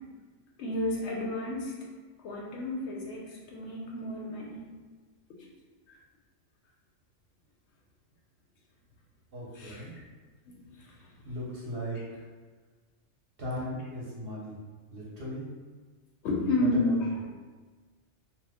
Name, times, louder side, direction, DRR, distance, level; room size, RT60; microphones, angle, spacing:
voice 1, 0.6-1.8 2.2-4.7 9.5-9.8 10.5-10.6 16.2-17.0, left 1 dB, 70° left, -2 dB, 0.8 m, -31 dB
voice 2, 9.3-9.9 11.2-12.2 13.4-14.6 14.9-15.5 16.6-17.2, equal, 55° right, -6 dB, 0.9 m, -37 dB
2.8 x 2.0 x 3.4 m, 1.4 s
omnidirectional pair, 1.3 m